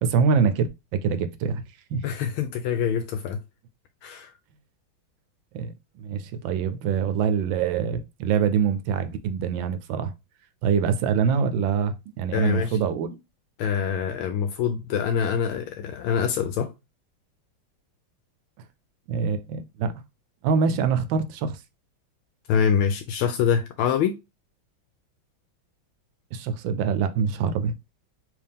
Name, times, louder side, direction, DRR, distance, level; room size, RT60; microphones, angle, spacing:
voice 1, 0.0-1.6 1.9-2.0 5.5-10.1 10.6-13.1 19.1-19.9 20.4-21.6 26.3-27.7, right 6 dB, 75° right, 1.2 m, -24 dB
voice 2, 2.0-3.4 4.0-4.3 12.3-12.8 13.6-16.7 22.5-24.2, left 7 dB, 85° left, 1.4 m, -25 dB
4.7 x 2.8 x 3.5 m
omnidirectional pair, 2.2 m